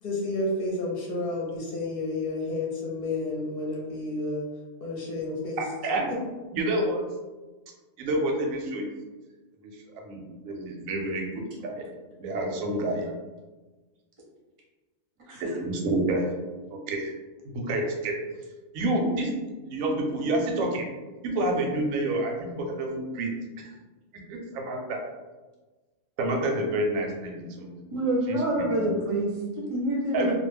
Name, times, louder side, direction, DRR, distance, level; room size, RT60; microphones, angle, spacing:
voice 1, 0.0-4.4 4.8-5.6, left 2 dB, 55° left, -4 dB, 0.7 m, -30 dB
voice 2, 5.6-6.1 6.5-7.0 8.0-8.9 9.6-9.7 10.0-11.8 12.2-13.1 15.4-16.3 16.9-17.1 17.5-18.1 18.7-19.3 19.6-20.9 21.2-23.3 23.6-23.7 24.3-25.0 26.2-27.7 28.3-28.8 30.1-30.3, right 1 dB, 90° right, 1 dB, 1.0 m, -28 dB
voice 3, 27.9-30.3, right 1 dB, 35° right, -3 dB, 0.6 m, -27 dB
2.3 x 2.2 x 3.2 m, 1.2 s
omnidirectional pair, 1.3 m